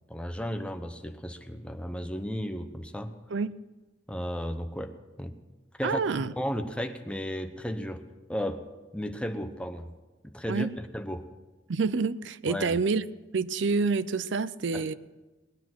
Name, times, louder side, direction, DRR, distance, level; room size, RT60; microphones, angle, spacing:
voice 1, 0.1-3.1 4.1-5.4 5.8-8.0 8.3-8.6 8.9-9.9 10.2-11.2 12.5-12.8 14.7-14.9, equal, 5° left, 7 dB, 0.8 m, -34 dB
voice 2, 5.8-6.3 10.5-10.7 11.7-13.0 13.3-14.9, right 4 dB, 70° right, 16 dB, 0.5 m, -27 dB
19.5 x 10.0 x 6.2 m, 1.1 s
head